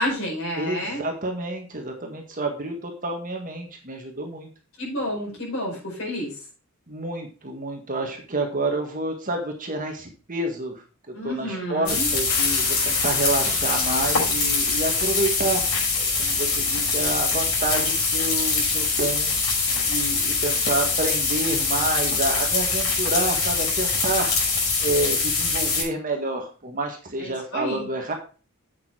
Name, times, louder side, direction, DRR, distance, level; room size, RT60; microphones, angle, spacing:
voice 1, 0.0-1.0 4.8-6.4 11.1-12.1 27.2-27.9, equal, 70° left, -3 dB, 5.1 m, -29 dB
voice 2, 0.5-4.5 6.9-15.6 15.9-19.3 19.9-24.3 24.8-28.1, right 2 dB, 40° right, 3 dB, 1.6 m, -29 dB
sound 1, 11.9-25.8, left 4 dB, 85° left, 5.5 m, -23 dB
sound 2, 12.3-15.9, left 6 dB, 45° left, 1.6 m, -34 dB
8.4 x 6.9 x 4.8 m, 0.36 s
head